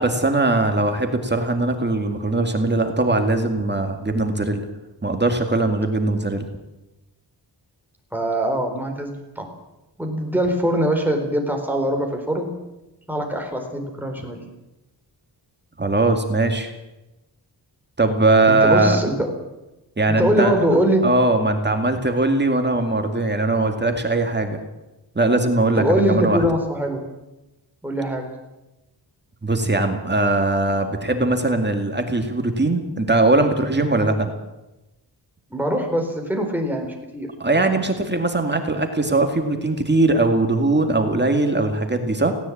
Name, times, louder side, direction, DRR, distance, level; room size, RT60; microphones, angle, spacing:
voice 1, 0.0-4.7 5.0-6.5 15.8-16.7 18.0-19.0 20.0-20.6 21.0-24.6 25.2-26.5 29.4-34.3 37.4-42.3, right 2 dB, 25° right, 5 dB, 2.3 m, -20 dB
voice 2, 8.1-9.5 10.0-12.5 13.1-14.4 18.5-19.3 20.2-21.1 25.8-27.1 27.8-28.3 35.5-37.3, right 1 dB, 5° right, 2 dB, 4.2 m, -22 dB
18.0 x 17.5 x 8.7 m, 0.99 s
wide cardioid pair, 150°, 42 cm